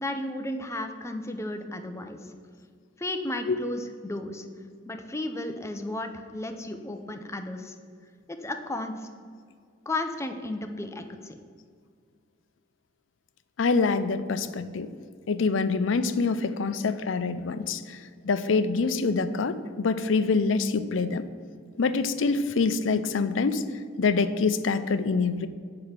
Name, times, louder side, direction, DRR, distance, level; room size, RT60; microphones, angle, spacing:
voice 1, 0.0-2.2 3.0-4.5 4.9-7.8 8.3-9.1 9.9-11.3, left 1 dB, 15° left, 6 dB, 0.6 m, -34 dB
voice 2, 13.6-14.9 15.3-21.2 21.8-23.6 24.0-25.5, left 4 dB, 70° left, 12 dB, 0.5 m, -25 dB
7.6 x 5.8 x 6.6 m, 2.1 s
head